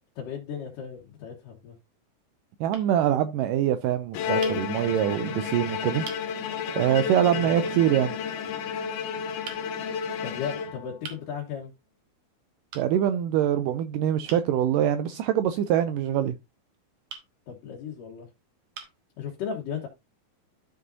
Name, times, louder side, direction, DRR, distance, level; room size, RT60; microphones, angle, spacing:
voice 1, 0.2-1.8 7.3-7.5 10.2-11.7 17.5-18.3 19.2-19.9, left 7 dB, 65° left, 2.8 m, -35 dB
sound 1, 0.9-1.6 2.3-2.4 2.7-2.9 4.4-4.6 5.4-5.5 6.0-6.3 7.7-7.8 9.4-9.7 11.0-11.3 12.7-12.9 14.3-14.5 17.1-17.3 18.1-18.2 18.7-19.0, right 6 dB, 55° right, 2.3 m, -42 dB
voice 2, 2.6-6.0 6.8-8.2 12.7-16.3, right 10 dB, 85° right, 1.9 m, -24 dB
Bowed string instrument, 4.1-11.1, left 6 dB, 90° left, 3.1 m, -31 dB
13.0 x 5.5 x 2.7 m
omnidirectional pair, 4.3 m